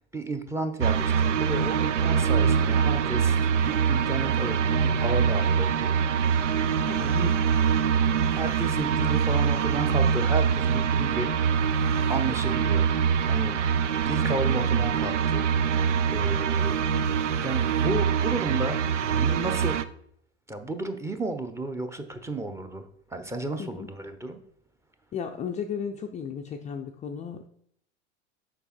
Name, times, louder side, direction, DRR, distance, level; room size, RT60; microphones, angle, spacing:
voice 1, 0.0-5.9 7.0-7.4 8.3-11.6 12.1-12.9 13.3-13.6 13.9-15.8 16.1-16.8 17.4-19.8 20.5-22.8 23.1-24.4, right 2 dB, 10° right, 7 dB, 0.8 m, -33 dB
sound 1, 0.8-19.8, right 7 dB, 90° right, 0.5 m, -24 dB
voice 2, 6.9-7.3 23.6-23.9 25.1-27.5, left 7 dB, 20° left, 4 dB, 0.4 m, -35 dB
6.9 x 5.1 x 4.3 m, 0.69 s
hypercardioid pair, 90°, 35 cm